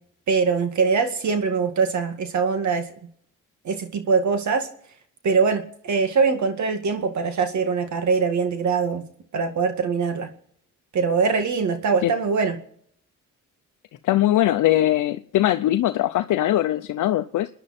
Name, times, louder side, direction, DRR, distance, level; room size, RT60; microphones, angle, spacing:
voice 1, 0.3-2.9 3.6-4.7 5.2-9.0 9.3-10.3 10.9-12.6, right 5 dB, 65° right, 2.1 m, -22 dB
voice 2, 14.0-17.5, left 13 dB, 80° left, 0.7 m, -21 dB
29.5 x 10.0 x 4.3 m
cardioid pair, 80°, 31 cm